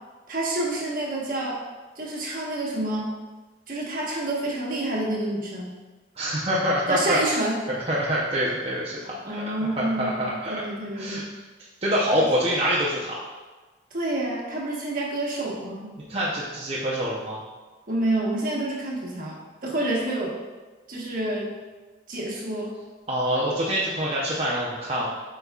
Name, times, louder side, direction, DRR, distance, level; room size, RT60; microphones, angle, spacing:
voice 1, 0.3-1.6 2.0-3.1 3.7-5.7 6.9-7.6 9.2-11.3 13.9-15.9 17.9-20.4 20.9-21.5 22.1-22.7, right 1 dB, 50° right, -3 dB, 1.3 m, -28 dB
voice 2, 6.2-7.2 7.7-9.4 9.8-10.6 10.9-11.2 11.8-13.2 16.1-17.4 23.1-25.1, equal, 30° right, -7 dB, 0.7 m, -25 dB
8.0 x 5.3 x 2.4 m, 1.3 s
head